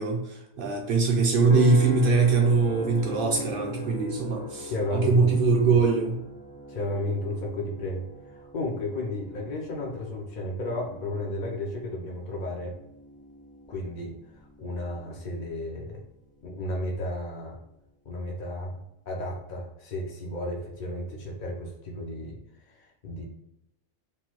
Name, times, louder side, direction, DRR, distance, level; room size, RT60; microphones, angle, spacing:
voice 1, 0.0-6.2, right 4 dB, 55° right, 0 dB, 0.7 m, -22 dB
sound 1, 1.5-16.0 16.5-16.9, equal, 10° right, 0.5 m, -40 dB
voice 2, 4.7-5.4 5.7-5.8 6.7-12.7 13.7-14.1 14.6-16.0 16.4-17.6 18.1-22.4 22.7-23.2, left 1 dB, 55° left, -2 dB, 0.5 m, -33 dB
3.1 x 2.2 x 3.0 m, 0.81 s
omnidirectional pair, 1.3 m